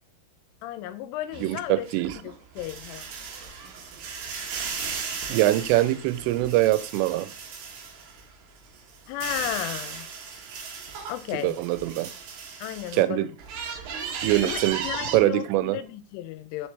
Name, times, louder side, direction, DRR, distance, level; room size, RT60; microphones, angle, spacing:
voice 1, 0.6-1.9 2.2-3.1 9.1-10.1 11.1-11.6 12.6-13.3 14.4-16.7, left 13 dB, 85° left, 12 dB, 3.1 m, -34 dB
sound 1, 1.3-8.2 8.7-13.0 13.4-15.2, right 6 dB, 65° right, 2.3 m, -36 dB
voice 2, 1.4-2.2 5.3-7.3 11.3-12.1 12.9-13.3 14.2-15.8, right 16 dB, 85° right, 14 dB, 3.2 m, -23 dB
6.7 x 6.5 x 3.3 m, 0.36 s
omnidirectional pair, 5.7 m